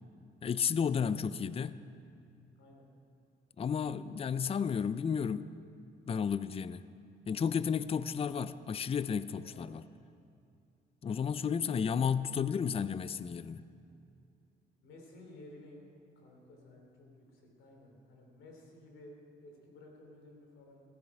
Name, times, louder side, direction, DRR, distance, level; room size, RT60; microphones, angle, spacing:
voice 1, 0.4-1.8 3.6-5.5 6.1-6.8 7.3-9.8 11.0-13.6, left 7 dB, 30° left, 15 dB, 0.4 m, -32 dB
voice 2, 9.4-9.8 14.8-20.8, left 1 dB, 85° left, 1 dB, 3.2 m, -55 dB
14.5 x 14.5 x 4.8 m, 2.5 s
cardioid pair, 90°, 20 cm